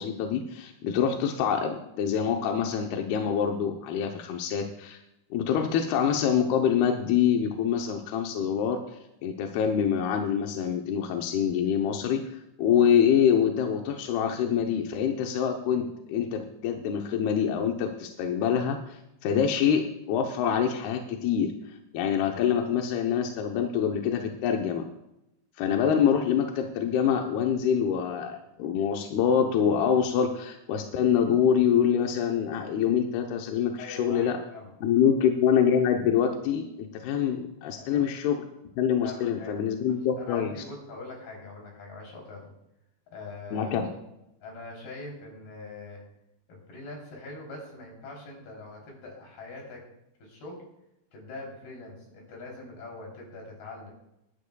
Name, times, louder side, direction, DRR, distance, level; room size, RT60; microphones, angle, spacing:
voice 1, 0.0-5.0 5.3-8.8 9.2-21.5 21.9-24.8 25.6-34.4 34.8-38.4 38.8-40.5 43.5-43.9, left 8 dB, 75° left, 3 dB, 2.5 m, -25 dB
voice 2, 33.8-34.7 35.0-35.1 37.8-38.0 39.0-39.6 40.2-42.5 43.1-43.8 44.4-46.0 46.5-49.8 50.2-50.6 51.1-53.9, left 3 dB, 60° left, 0 dB, 5.1 m, -43 dB
20.5 x 11.5 x 2.3 m, 0.86 s
omnidirectional pair, 5.2 m